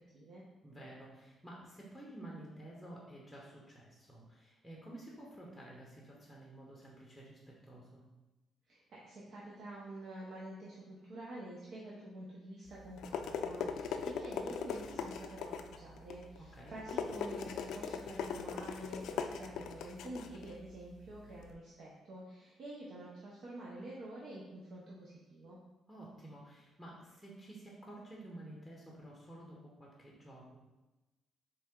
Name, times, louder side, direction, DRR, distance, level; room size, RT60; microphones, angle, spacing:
voice 1, 0.6-8.0 16.4-16.8 25.9-30.6, right 1 dB, ahead, -3 dB, 0.9 m, -51 dB
voice 2, 8.7-25.6, right 1 dB, 65° right, -5 dB, 0.8 m, -48 dB
sound 1, 12.7-21.5, left 6 dB, 80° left, 0.3 m, -40 dB
4.1 x 3.3 x 3.7 m, 1.1 s
cardioid pair, 105°, 0 cm